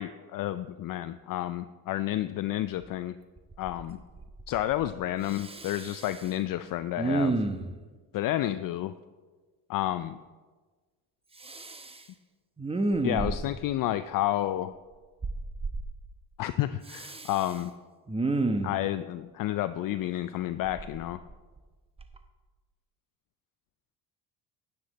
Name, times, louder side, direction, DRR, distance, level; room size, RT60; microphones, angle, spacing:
voice 1, 0.0-3.1 3.6-4.0 4.5-7.3 8.1-8.9 9.7-10.2 13.0-14.7 16.4-17.7 18.6-21.2, left 13 dB, 50° left, 11 dB, 0.5 m, -30 dB
Respiratory sounds, 2.8-2.9 3.4-3.9 4.2-4.9 5.3-6.3 7.0-7.8 11.4-12.0 12.6-13.6 15.2-15.8 16.9-17.6 18.1-18.8 20.6-21.6 22.0-22.2, right 2 dB, 15° right, 0.9 m, -31 dB
9.7 x 9.7 x 4.1 m, 1.3 s
supercardioid pair, 80°, 44 cm